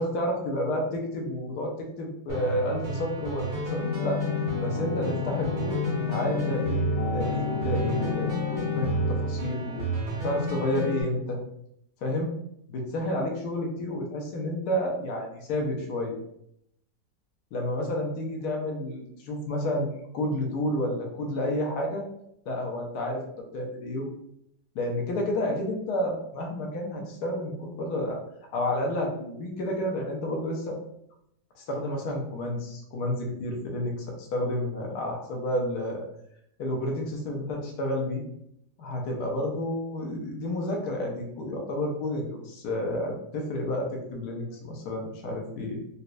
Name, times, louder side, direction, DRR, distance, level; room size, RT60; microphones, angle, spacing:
voice 1, 0.0-4.2 4.6-6.8 7.1-11.4 12.0-12.3 12.7-16.1 17.5-22.0 22.5-23.2 23.5-24.1 24.7-28.2 28.5-30.8 31.6-36.0 36.6-38.2 38.8-45.8, left 1 dB, 70° left, 1 dB, 1.1 m, -30 dB
sound 1, 2.3-11.0, right 2 dB, 65° right, 1.5 m, -31 dB
sound 2, 3.8-9.6, left 6 dB, 90° left, 1.6 m, -31 dB
4.1 x 2.2 x 2.5 m, 0.75 s
omnidirectional pair, 2.0 m